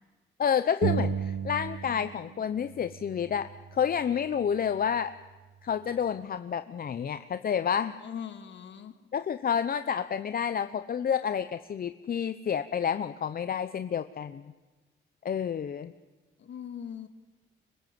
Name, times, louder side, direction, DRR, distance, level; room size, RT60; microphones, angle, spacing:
voice 1, 0.4-5.1 5.6-7.9 9.1-14.4 15.2-15.9, left 8 dB, 50° left, 12 dB, 0.9 m, -29 dB
sound 1, 0.8-2.3 2.6-4.4, right 7 dB, 70° right, 2.0 m, -34 dB
voice 2, 8.0-8.9 16.4-17.1, left 8 dB, 65° left, 8 dB, 2.8 m, -40 dB
24.5 x 21.5 x 9.4 m, 1.3 s
cardioid pair, 90°, 20 cm